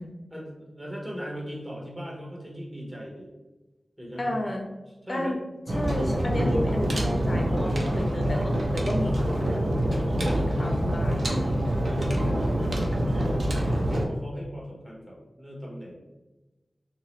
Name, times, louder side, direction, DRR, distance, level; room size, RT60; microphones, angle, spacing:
voice 1, 0.3-3.3 4.0-4.4 5.1-5.3 12.3-15.9, equal, 20° right, -3 dB, 1.1 m, -39 dB
voice 2, 4.2-4.7 5.1-5.4 5.7-11.3 12.5-13.3, left 1 dB, 45° left, 2 dB, 0.4 m, -33 dB
sound 1, 5.7-14.1, right 1 dB, 60° right, 0.6 m, -25 dB
2.9 x 2.9 x 3.1 m, 1.1 s
wide cardioid pair, 75°, 0 cm